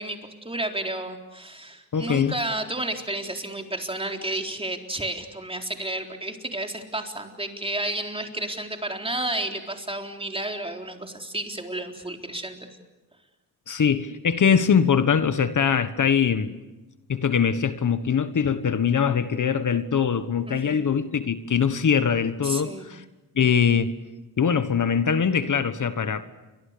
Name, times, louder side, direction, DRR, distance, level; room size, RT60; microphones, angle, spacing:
voice 1, 0.0-12.7 20.5-20.8 22.4-22.9, right 1 dB, 15° right, 4.0 m, -31 dB
voice 2, 1.9-2.4 13.7-16.5 17.1-23.0 23.3-23.9 24.4-26.3, left 7 dB, 55° left, 1.4 m, -22 dB
30.0 x 25.0 x 6.8 m
cardioid pair, 95°, 36 cm